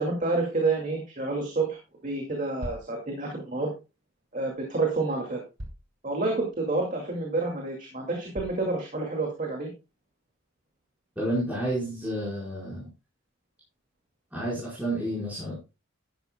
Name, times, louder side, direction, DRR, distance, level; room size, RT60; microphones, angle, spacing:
voice 1, 0.0-1.8 2.0-3.7 4.3-5.4 6.0-9.7, right 3 dB, 40° right, 1 dB, 2.2 m, -29 dB
sound 1, 2.6-2.9 4.5-4.6 5.6-5.9 6.5-6.6 7.2-7.3 8.3-8.7, equal, 80° right, 3.0 m, -39 dB
voice 2, 11.2-12.9 14.3-15.5, right 1 dB, 5° right, -8 dB, 4.5 m, -30 dB
11.5 x 11.0 x 2.2 m, 0.28 s
head